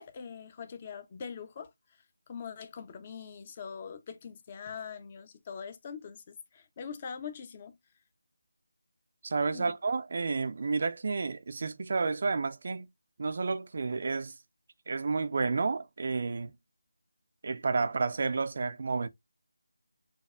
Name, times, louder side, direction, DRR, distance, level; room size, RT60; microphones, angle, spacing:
voice 1, 0.0-1.7 2.3-7.7 9.5-9.7, left 6 dB, 25° left, 0.5 m, -43 dB
voice 2, 9.2-12.9 13.2-14.4 14.9-16.5 17.4-19.1, right 4 dB, 45° right, 0.4 m, -31 dB
6.8 x 2.3 x 2.4 m
figure-of-eight pair, 160°, 0 cm